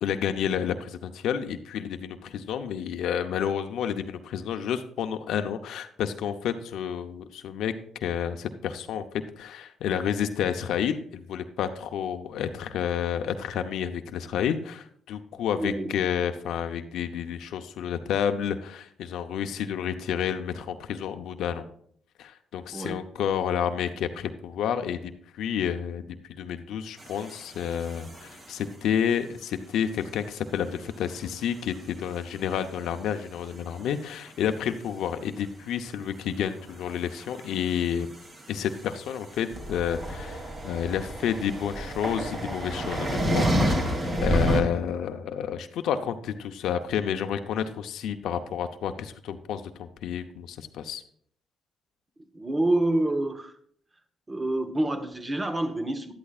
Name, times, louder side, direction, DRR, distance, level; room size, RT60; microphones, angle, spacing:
voice 1, 0.0-7.7 8.0-9.0 9.4-21.7 22.2-38.1 38.5-51.0, left 8 dB, 80° left, 7 dB, 0.7 m, -30 dB
voice 2, 15.6-15.9 22.7-23.0 52.3-53.5 54.3-56.1, right 1 dB, 20° right, 9 dB, 1.2 m, -27 dB
sound 1, 27.0-28.6 31.0-32.1 32.4-32.9 33.2-33.5 33.9-34.0 34.3-34.4 36.5-44.6, equal, 40° right, 2.8 m, -30 dB
12.0 x 11.5 x 2.5 m, 0.63 s
cardioid pair, 90°, 0 cm